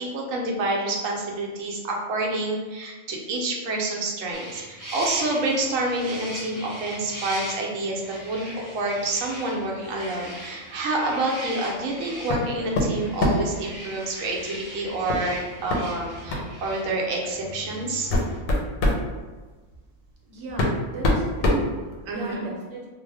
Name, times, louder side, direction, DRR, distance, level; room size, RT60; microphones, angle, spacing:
voice 1, 0.0-18.1 22.1-22.5, right 2 dB, 80° right, -1 dB, 1.0 m, -28 dB
sound 1, 4.3-18.4, equal, 30° right, 0.4 m, -39 dB
sound 2, 12.3-12.5 12.8-13.6 15.1-15.3 15.7-15.8 16.3-16.5 17.3-17.4 17.9-19.0 20.1-20.2 20.6-22.3, left 1 dB, 90° left, 1.0 m, -23 dB
voice 2, 20.2-22.9, right 2 dB, 55° right, -3 dB, 0.8 m, -36 dB
2.4 x 2.0 x 3.2 m, 1.3 s
omnidirectional pair, 1.4 m